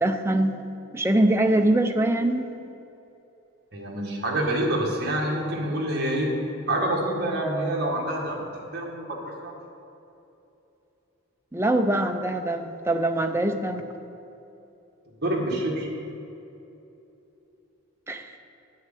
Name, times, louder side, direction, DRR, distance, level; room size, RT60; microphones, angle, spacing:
voice 1, 0.0-0.6 0.9-2.5 11.5-13.8 18.1-18.3, right 1 dB, 10° right, 5 dB, 0.5 m, -23 dB
voice 2, 3.7-6.3 6.7-8.4 8.7-9.5 15.2-15.9, right 1 dB, 45° right, -2 dB, 1.9 m, -27 dB
8.9 x 6.6 x 8.3 m, 2.9 s
head